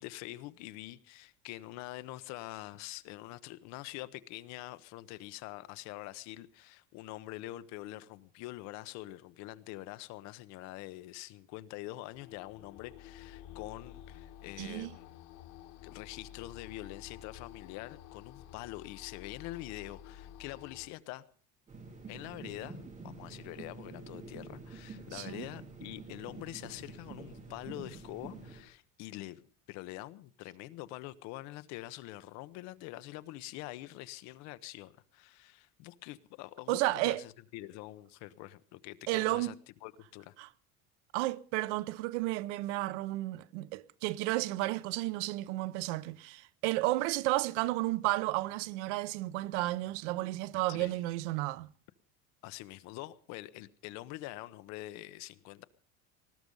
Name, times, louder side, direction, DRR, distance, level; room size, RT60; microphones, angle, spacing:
voice 1, 0.0-15.1 15.8-21.2 22.1-29.4 29.7-39.5 39.8-40.3 50.7-51.0 52.4-55.6, left 17 dB, 50° left, 0.9 m, -45 dB
sound 1, 12.1-20.9, left 11 dB, 85° left, 2.1 m, -51 dB
voice 2, 14.6-14.9 25.1-25.5 36.7-37.2 39.1-39.5 40.4-40.5 41.1-51.7, right 18 dB, 80° right, 0.9 m, -32 dB
sound 2, 21.7-28.6, right 3 dB, 20° right, 2.5 m, -48 dB
20.0 x 13.0 x 5.4 m
cardioid pair, 175°, 35 cm